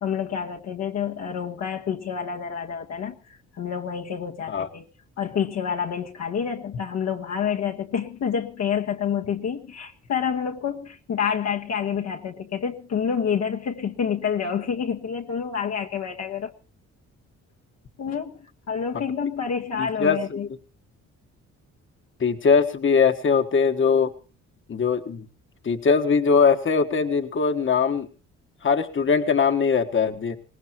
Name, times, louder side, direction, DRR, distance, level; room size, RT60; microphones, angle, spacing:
voice 1, 0.0-3.2 3.6-4.9 5.2-16.5 18.0-20.5, left 7 dB, 60° left, 1.4 m, -28 dB
voice 2, 19.8-20.5 22.2-24.1 24.7-25.2 25.6-28.1 28.6-30.4, left 5 dB, 40° left, 1.5 m, -21 dB
22.0 x 18.5 x 3.0 m
cardioid pair, 90°, 30 cm